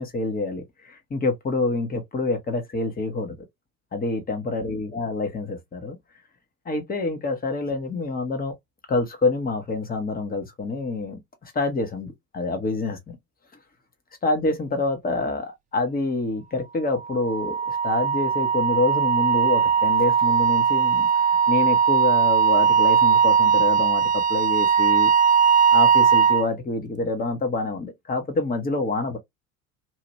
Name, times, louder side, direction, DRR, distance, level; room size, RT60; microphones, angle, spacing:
voice 1, 0.0-3.4 3.9-6.0 6.6-8.5 8.9-13.2 14.2-25.1 25.7-29.2, left 3 dB, 20° left, 1.1 m, -27 dB
Wind instrument woodwind instrument, 17.0-26.4, right 7 dB, 20° right, 0.6 m, -19 dB
2.8 x 2.5 x 3.0 m
figure-of-eight pair, 70°, 43 cm